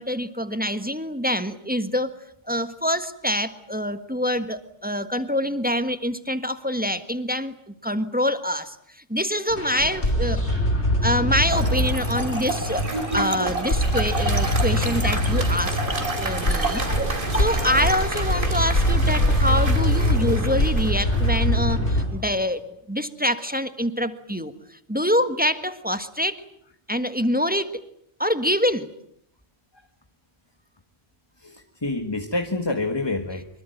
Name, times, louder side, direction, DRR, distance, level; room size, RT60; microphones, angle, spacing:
voice 1, 0.0-2.1 2.5-10.4 11.0-12.9 13.1-15.8 16.2-26.4 26.9-27.7 28.2-28.9, equal, 10° right, 10 dB, 1.5 m, -25 dB
sound 1, 9.5-22.0, equal, 85° left, 5.3 m, -23 dB
Trickle dribble / Fill (with liquid), 11.4-18.1, right 2 dB, 30° right, 3.3 m, -31 dB
Applause, 12.9-22.2, right 2 dB, 50° right, 3.1 m, -33 dB
voice 2, 31.4-33.5, left 2 dB, 20° left, 7 dB, 1.7 m, -27 dB
25.0 x 23.0 x 9.3 m, 0.70 s
omnidirectional pair, 1.1 m